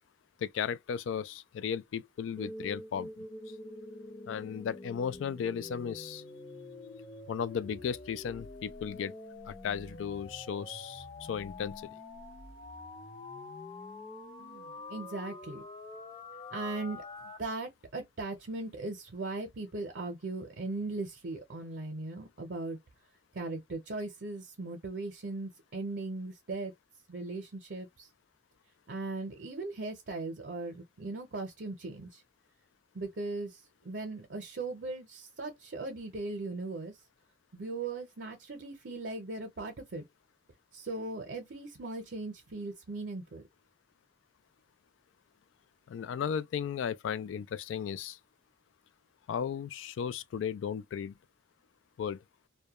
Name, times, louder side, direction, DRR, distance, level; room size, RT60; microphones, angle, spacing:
voice 1, 0.4-3.1 4.3-6.2 7.3-9.1 9.5-11.9 45.9-48.2 49.3-51.1 52.0-52.2, left 7 dB, 90° left, 0.3 m, -35 dB
sound 1, 2.4-17.4, left 2 dB, 25° left, 0.5 m, -46 dB
voice 2, 14.4-15.6 16.5-22.8 23.3-26.7 27.1-28.1 28.9-32.2 32.9-37.0 37.5-40.0 40.7-43.4, right 2 dB, 65° right, 0.6 m, -38 dB
2.2 x 2.1 x 2.8 m
head